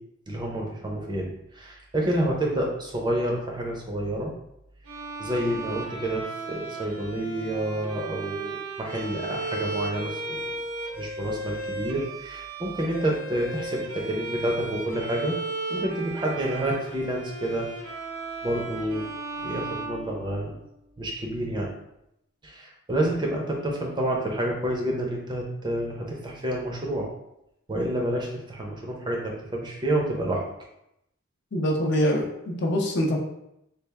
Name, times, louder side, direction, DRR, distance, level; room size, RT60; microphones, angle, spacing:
voice 1, 0.3-4.3 5.2-10.5 11.0-15.3 15.7-17.7 18.4-19.1 19.4-20.6 21.0-21.7 22.4-27.1 27.7-30.4, right 1 dB, 20° right, -1 dB, 0.5 m, -29 dB
Bowed string instrument, 4.9-20.7, right 2 dB, 75° right, 0.7 m, -35 dB
voice 2, 31.5-33.2, equal, 55° left, 0 dB, 0.6 m, -24 dB
3.4 x 2.4 x 3.2 m, 0.81 s
head